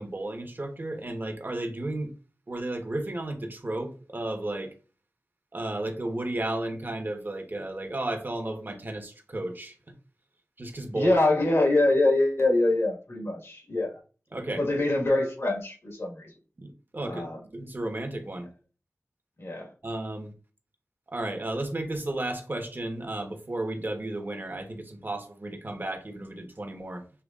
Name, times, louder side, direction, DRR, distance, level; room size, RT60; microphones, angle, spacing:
voice 1, 0.0-2.1 2.5-4.7 5.5-9.8 10.6-11.1 14.3-14.6 16.6-18.5 19.8-20.3 21.1-27.0, right 1 dB, 45° right, 1.1 m, -33 dB
voice 2, 10.9-14.0 14.6-16.3 17.1-17.4 19.4-19.7, left 2 dB, 60° left, 1.5 m, -24 dB
6.9 x 3.0 x 2.4 m
wide cardioid pair, 50°, 5 cm